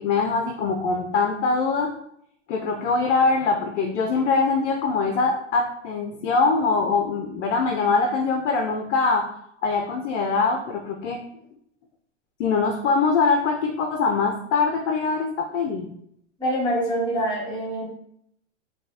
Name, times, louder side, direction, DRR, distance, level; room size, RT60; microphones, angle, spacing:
voice 1, 0.0-1.9 2.5-9.3 9.6-11.2 12.4-15.9, left 4 dB, 75° left, 3 dB, 0.6 m, -23 dB
voice 2, 16.4-17.9, right 1 dB, 10° left, -9 dB, 1.4 m, -25 dB
3.8 x 2.3 x 2.6 m, 0.72 s
hypercardioid pair, 115°, 36 cm